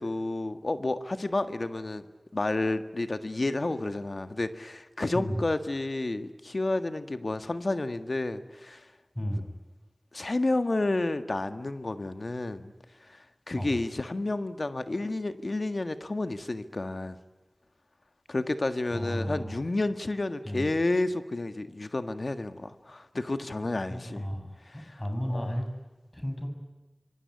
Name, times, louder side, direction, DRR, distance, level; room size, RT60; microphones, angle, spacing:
voice 1, 0.0-2.1 2.3-8.9 10.1-12.7 13.1-17.2 18.3-24.2 24.7-24.8 25.3-25.5, left 2 dB, 70° left, 10 dB, 1.7 m, -30 dB
voice 2, 9.1-9.5 13.5-13.7 18.9-19.6 20.4-20.7 23.9-25.6 26.1-26.5, equal, 20° left, 5 dB, 7.8 m, -33 dB
26.0 x 23.0 x 9.8 m, 1.2 s
wide cardioid pair, 40°, 0 cm